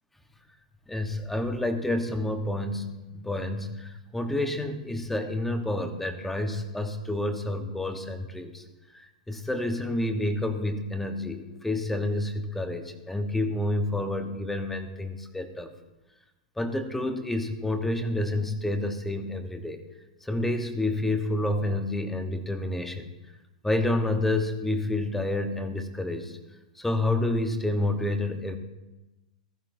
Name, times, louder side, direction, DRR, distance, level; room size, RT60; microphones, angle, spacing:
voice 1, 0.9-8.6 9.3-15.7 16.6-19.8 20.3-23.1 23.6-26.3 26.8-28.6, left 1 dB, 5° left, 7 dB, 1.0 m, -29 dB
15.5 x 12.5 x 2.6 m, 1.0 s
hypercardioid pair, 125°, 4 cm